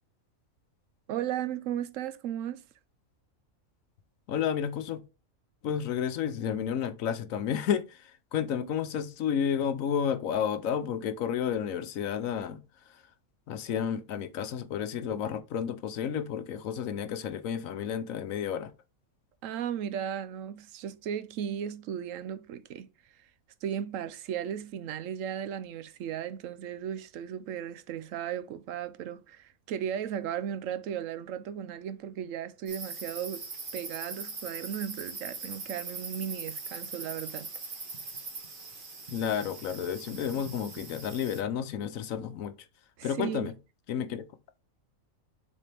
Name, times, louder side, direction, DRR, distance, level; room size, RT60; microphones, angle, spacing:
voice 1, 1.1-2.6 19.4-22.9 23.6-33.5 33.7-37.5 43.0-43.5, right 9 dB, 70° right, 0.9 m, -36 dB
voice 2, 4.3-5.0 5.6-12.6 13.5-18.7 39.1-42.5 43.0-43.5 43.9-44.2, left 8 dB, 75° left, 1.1 m, -31 dB
sound 1, 32.7-41.4, right 4 dB, 40° right, 1.3 m, -41 dB
7.1 x 4.2 x 3.4 m
omnidirectional pair, 1.4 m